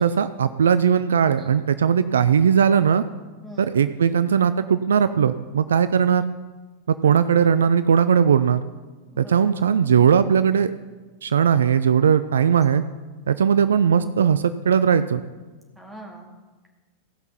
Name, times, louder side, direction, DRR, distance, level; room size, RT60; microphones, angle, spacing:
voice 1, 0.0-3.0 3.6-6.2 6.9-8.6 9.2-10.7 11.2-12.8 13.3-15.2, right 7 dB, 65° right, 13 dB, 0.3 m, -19 dB
voice 2, 3.4-3.7 7.0-7.3 9.1-9.5 15.8-16.3, right 1 dB, 5° right, -1 dB, 2.4 m, -42 dB
16.5 x 5.8 x 5.7 m, 1.3 s
figure-of-eight pair, 90°, 0 cm